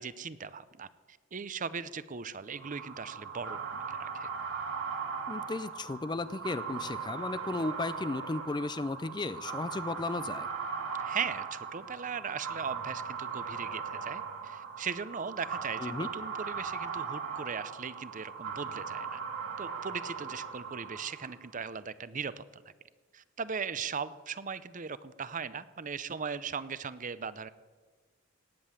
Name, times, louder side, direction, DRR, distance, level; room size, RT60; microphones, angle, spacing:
voice 1, 0.0-3.6 3.9-4.3 11.0-19.2 19.6-22.6 23.1-27.5, right 6 dB, 40° right, 15 dB, 0.6 m, -38 dB
sound 1, 2.6-21.5, right 6 dB, 75° right, 2.2 m, -39 dB
voice 2, 5.3-10.5 15.8-16.1, left 3 dB, 20° left, 15 dB, 0.4 m, -35 dB
18.0 x 7.7 x 8.9 m, 1.4 s
head